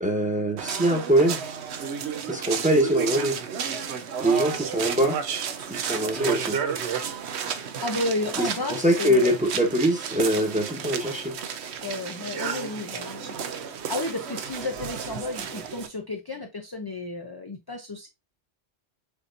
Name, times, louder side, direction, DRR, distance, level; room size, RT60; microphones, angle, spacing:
voice 1, 0.0-1.4 2.3-3.4 4.2-5.2 5.7-6.6 8.4-11.4, right 1 dB, 5° right, 1.1 m, -23 dB
sound 1, 0.6-15.9, right 7 dB, 75° right, 1.0 m, -32 dB
voice 2, 7.8-9.3 11.8-13.4 13.9-18.1, left 2 dB, 25° left, 0.6 m, -32 dB
7.0 x 2.8 x 2.5 m
omnidirectional pair, 1.1 m